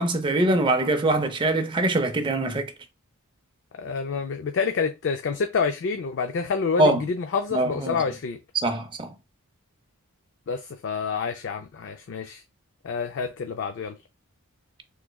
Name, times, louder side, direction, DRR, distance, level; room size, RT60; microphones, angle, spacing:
voice 1, 0.0-2.7 6.8-7.0 7.5-8.0 8.5-9.1, right 2 dB, 20° right, 0.4 m, -23 dB
voice 2, 3.8-8.4 10.5-12.4 12.8-13.9, left 5 dB, 55° left, 0.4 m, -28 dB
3.5 x 3.0 x 2.2 m
head